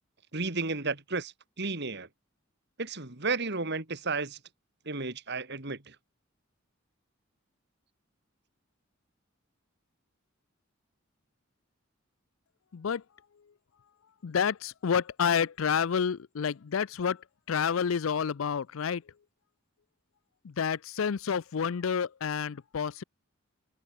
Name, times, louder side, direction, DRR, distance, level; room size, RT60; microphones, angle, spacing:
voice 1, 0.3-2.1 2.8-4.4 4.9-5.9, right 3 dB, 55° right, 2.9 m, -33 dB
voice 2, 14.2-17.2 17.5-19.0 20.4-23.0, left 7 dB, 85° left, 0.5 m, -29 dB
head